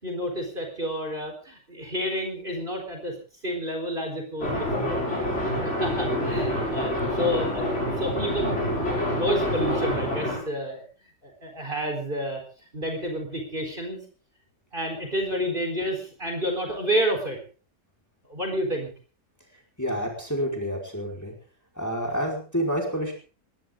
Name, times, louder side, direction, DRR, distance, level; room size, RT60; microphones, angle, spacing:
voice 1, 0.0-3.1 3.4-5.0 5.4-10.8 11.2-12.4 12.7-14.0 14.7-17.4 18.3-18.9, equal, 30° right, 2 dB, 4.5 m, -30 dB
sound 1, 4.4-10.4, left 1 dB, 40° left, 7.1 m, -27 dB
voice 2, 19.8-21.3 21.7-23.1, equal, 10° left, 0 dB, 5.0 m, -28 dB
20.5 x 17.5 x 3.8 m, 0.39 s
omnidirectional pair, 1.9 m